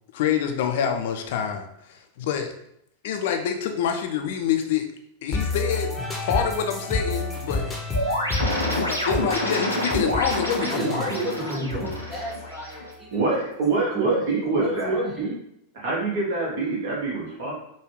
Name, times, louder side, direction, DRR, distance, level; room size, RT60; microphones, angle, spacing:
voice 1, 0.1-2.5 3.0-4.9 5.2-5.9 6.3-7.7 8.7-11.1, left 8 dB, 55° left, 5 dB, 0.4 m, -26 dB
sound 1, 5.3-13.1, left 3 dB, 10° left, 0.8 m, -31 dB
sound 2, 7.9-12.9, equal, 80° right, 0.8 m, -28 dB
voice 2, 10.6-13.2 13.8-15.4, right 1 dB, 5° right, -5 dB, 1.3 m, -29 dB
voice 3, 13.1-15.0 15.8-17.5, right 3 dB, 50° right, -3 dB, 1.3 m, -25 dB
4.9 x 2.3 x 3.1 m, 0.76 s
figure-of-eight pair, 90°, 0 cm